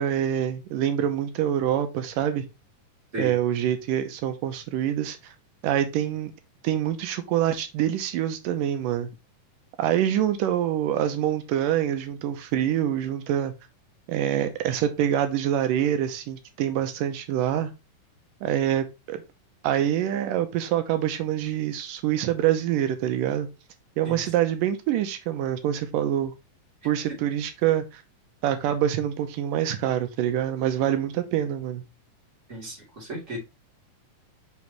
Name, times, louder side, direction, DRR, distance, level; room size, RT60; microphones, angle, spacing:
voice 1, 0.0-2.4 3.2-5.3 5.6-6.3 6.6-9.1 9.8-13.5 14.1-17.7 18.4-19.2 19.6-23.5 24.0-26.3 26.8-28.0 28.4-31.8, right 11 dB, 85° right, 2.4 m, -25 dB
voice 2, 32.5-33.4, equal, 20° right, 3.1 m, -35 dB
5.9 x 5.3 x 3.0 m
omnidirectional pair, 3.9 m